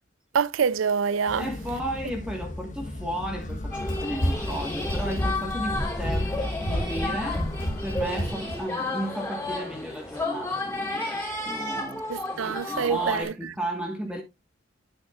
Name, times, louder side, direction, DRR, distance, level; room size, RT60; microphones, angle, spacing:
voice 1, 0.3-1.5 12.1-13.3, right 6 dB, 80° right, 0.5 m, -25 dB
sound 1, 1.3-8.2, left 1 dB, 40° left, 1.1 m, -36 dB
voice 2, 1.4-7.4 7.8-12.0 12.3-14.2, right 1 dB, 5° right, 1.4 m, -34 dB
Run, 3.4-8.6, equal, 80° left, 2.8 m, -31 dB
sound 2, 3.7-13.2, left 2 dB, 10° left, 3.1 m, -32 dB
11.5 x 6.3 x 2.4 m
head